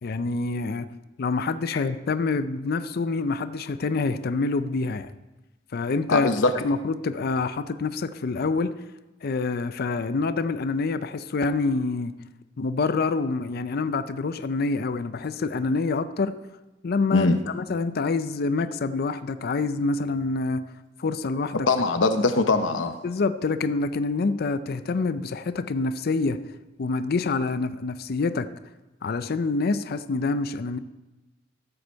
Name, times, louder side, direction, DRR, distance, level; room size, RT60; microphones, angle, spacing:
voice 1, 0.0-0.9 1.2-5.1 5.7-6.3 6.5-8.7 9.2-12.1 12.6-16.4 16.8-17.3 17.5-20.7 21.0-21.7 23.0-26.4 26.8-28.5 29.0-30.8, left 3 dB, 55° left, 12 dB, 0.5 m, -26 dB
voice 2, 6.1-6.5 17.1-17.4 21.7-22.9, left 3 dB, 80° left, 9 dB, 0.8 m, -21 dB
14.0 x 7.9 x 4.5 m, 1.1 s
head